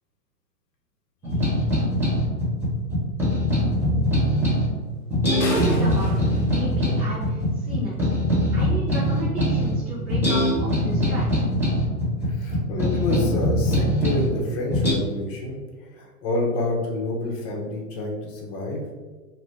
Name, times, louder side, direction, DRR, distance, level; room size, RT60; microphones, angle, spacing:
sound 1, 1.2-4.7 5.1-9.8 10.1-14.3 14.7-14.9, equal, 5° right, 1.4 m, -22 dB
voice 1, 5.3-6.1 6.5-7.9 8.5-11.4, equal, 25° right, -9 dB, 1.0 m, -32 dB
sound 2, 5.4-7.6, left 3 dB, 80° left, 0.7 m, -36 dB
voice 2, 12.2-15.6 15.9-18.8, left 2 dB, 35° left, 0 dB, 1.0 m, -28 dB
2.9 x 2.5 x 3.5 m, 1.3 s
hypercardioid pair, 110°, 48 cm